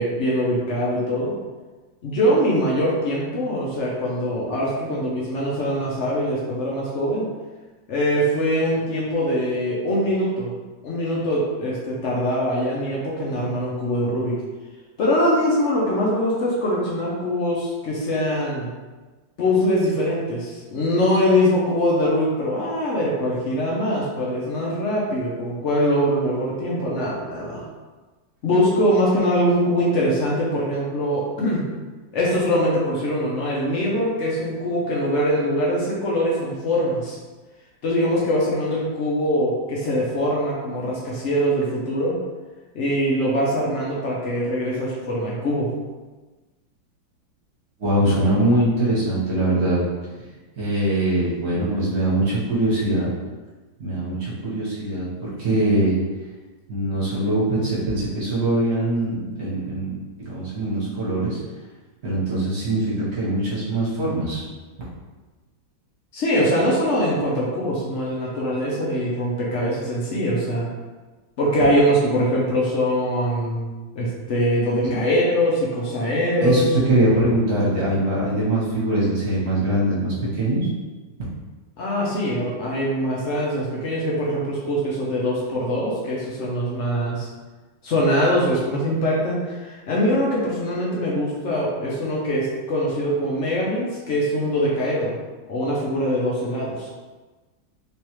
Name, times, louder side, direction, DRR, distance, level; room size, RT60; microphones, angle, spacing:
voice 1, 0.0-1.3 2.0-7.3 7.9-10.5 10.8-14.3 15.0-18.7 19.4-27.6 28.4-31.6 32.1-37.2 37.8-42.1 42.7-45.7 66.1-70.7 71.4-76.7 81.8-87.3 87.8-95.1 95.5-96.9, equal, 80° left, -5 dB, 0.6 m, -23 dB
voice 2, 47.8-49.8 50.6-53.1 53.8-56.0 56.7-59.9 60.2-61.4 62.0-64.4 76.4-80.7, right 1 dB, 40° right, -8 dB, 1.2 m, -22 dB
3.4 x 3.1 x 3.0 m, 1.3 s
omnidirectional pair, 2.1 m